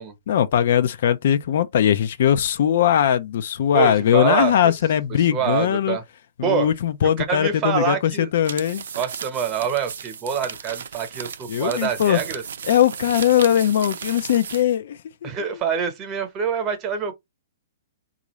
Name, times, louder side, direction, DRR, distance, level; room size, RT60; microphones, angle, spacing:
voice 1, 0.3-6.0 6.4-8.8 11.5-12.2 12.7-15.6, left 10 dB, 60° left, 0.5 m, -20 dB
voice 2, 3.7-4.7 5.3-6.0 6.4-6.7 7.0-8.3 8.9-12.4 15.2-17.1, right 7 dB, 30° right, 1.0 m, -25 dB
sound 1, 8.4-14.7, right 7 dB, 75° right, 0.5 m, -35 dB
3.8 x 2.5 x 3.1 m
hypercardioid pair, 130°, 0 cm